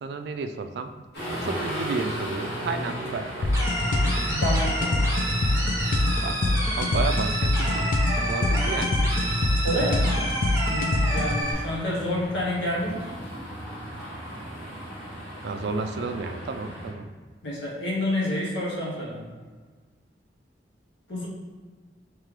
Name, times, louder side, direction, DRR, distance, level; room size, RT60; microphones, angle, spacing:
voice 1, 0.0-0.9 1.3-3.5 6.2-9.4 15.4-17.1, right 4 dB, 65° right, 7 dB, 0.3 m, -32 dB
sound 1, 1.1-16.9, equal, 60° left, 1.4 m, -37 dB
sound 2, 3.4-11.4, left 2 dB, 45° left, 0.3 m, -25 dB
sound 3, 3.5-11.5, right 1 dB, 15° right, 0.6 m, -30 dB
voice 2, 4.3-5.0 9.6-10.3 10.6-13.2 17.4-19.2 21.1-21.3, left 1 dB, 90° left, -3 dB, 1.0 m, -29 dB
3.2 x 3.2 x 3.6 m, 1.5 s
head